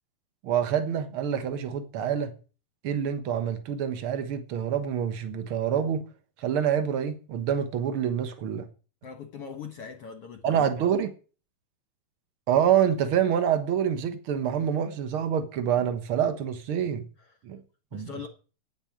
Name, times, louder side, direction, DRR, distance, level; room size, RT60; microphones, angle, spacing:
voice 1, 0.4-2.3 2.8-6.1 6.4-8.7 10.4-11.1 12.5-17.0 17.4-17.6 17.9-18.3, right 9 dB, 80° right, 1.2 m, -26 dB
voice 2, 9.0-10.6 17.2-17.3 17.9-18.3, left 6 dB, 65° left, 1.5 m, -41 dB
9.8 x 8.9 x 9.0 m
omnidirectional pair, 4.5 m